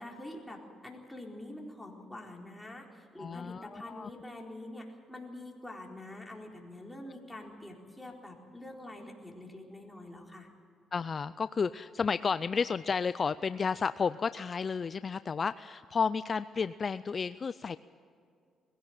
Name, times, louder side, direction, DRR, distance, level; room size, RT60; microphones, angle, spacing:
voice 1, 0.0-10.5, left 1 dB, 10° left, 0 dB, 4.2 m, -46 dB
voice 2, 3.2-4.1 10.9-17.8, left 5 dB, 40° left, 14 dB, 0.4 m, -32 dB
21.0 x 16.5 x 8.9 m, 2.4 s
cardioid pair, 90°, 0 cm